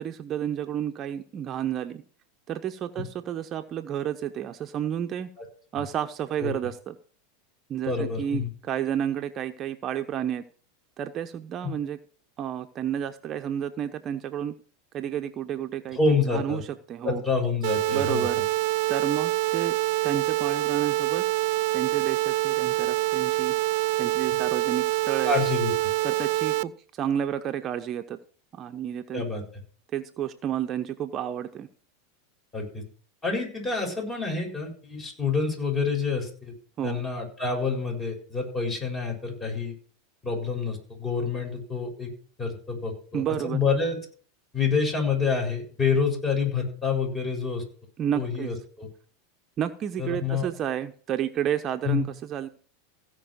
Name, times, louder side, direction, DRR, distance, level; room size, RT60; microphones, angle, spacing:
voice 1, 0.0-2.0 2.5-5.3 5.7-7.0 7.7-10.4 11.0-12.0 12.4-14.5 14.9-16.0 16.3-17.2 17.9-18.4 18.9-19.8 20.0-21.2 21.7-23.5 24.0-25.3 26.0-28.2 28.5-29.2 29.9-31.7 36.8-37.0 43.1-43.6 48.0-48.5 49.6-52.5, right 9 dB, 35° right, 7 dB, 0.9 m, -31 dB
voice 2, 7.9-8.5 11.6-11.7 15.9-16.6 17.0-18.3 25.2-25.9 29.1-29.4 32.5-32.8 33.2-36.5 36.8-39.7 40.2-42.1 42.4-44.0 44.5-47.6 48.1-48.9 50.0-50.5 51.8-52.0, left 4 dB, 25° left, 2 dB, 7.0 m, -27 dB
sound 1, 17.6-26.6, right 16 dB, 60° right, 0.5 m, -25 dB
16.5 x 5.5 x 6.5 m, 0.43 s
hypercardioid pair, 110°, 0 cm